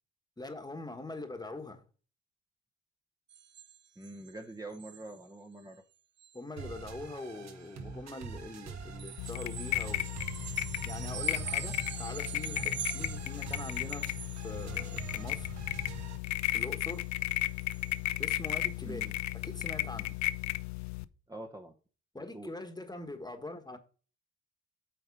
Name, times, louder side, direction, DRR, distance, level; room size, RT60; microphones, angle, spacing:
voice 1, 0.4-1.8 6.3-10.1 10.8-15.6 16.5-17.1 18.2-19.0 19.3-20.2 22.1-23.8, left 2 dB, 15° left, 1.3 m, -43 dB
sound 1, 3.3-4.4 4.7-5.3 5.6-5.8 6.2-6.4 9.0-15.5 15.8-17.0 17.3-17.4 17.6-18.0 18.5-18.6, right 9 dB, 40° right, 0.5 m, -45 dB
voice 2, 4.0-5.8 18.8-19.1 21.3-21.8 22.3-22.5, right 2 dB, 10° right, 0.9 m, -45 dB
sound 2, 6.6-16.2, right 5 dB, 60° right, 1.5 m, -45 dB
sound 3, 9.2-21.0, left 15 dB, 70° left, 0.5 m, -34 dB
8.6 x 3.9 x 5.2 m
cardioid pair, 90°, 30 cm